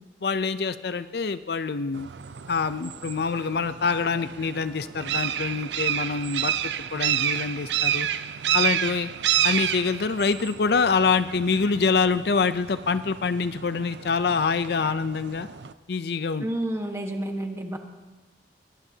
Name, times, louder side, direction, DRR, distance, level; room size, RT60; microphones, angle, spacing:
voice 1, 0.2-2.1 2.5-8.1 8.5-9.1 9.4-15.5 15.9-16.5, left 5 dB, 60° left, 13 dB, 0.5 m, -25 dB
sound 1, 1.9-15.7, right 10 dB, 70° right, 0.5 m, -30 dB
voice 2, 16.4-17.8, right 1 dB, 15° right, 3 dB, 1.3 m, -30 dB
23.5 x 18.5 x 2.8 m, 1.2 s
head